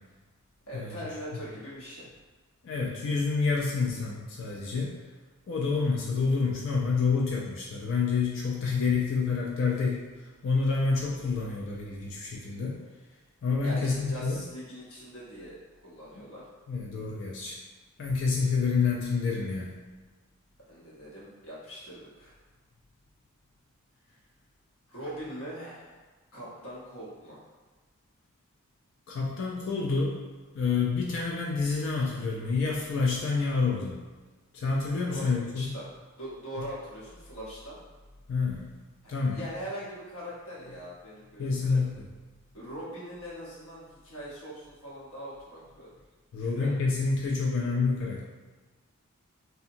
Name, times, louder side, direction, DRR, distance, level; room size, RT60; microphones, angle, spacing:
voice 1, 0.7-2.1 13.6-16.5 20.7-22.4 24.9-26.0 26.3-27.4 35.1-35.9 36.2-37.8 39.0-41.8 42.5-45.9 46.4-46.7, equal, 75° left, -7 dB, 1.0 m, -41 dB
voice 2, 2.6-5.0 5.5-12.8 13.4-14.4 16.2-16.3 16.7-17.6 18.0-19.8 29.1-30.2 30.5-34.0 34.5-35.7 38.3-38.7 39.1-39.4 41.4-42.1 46.3-48.2, left 4 dB, 60° left, -3 dB, 0.4 m, -28 dB
2.7 x 2.2 x 2.6 m, 1.3 s
head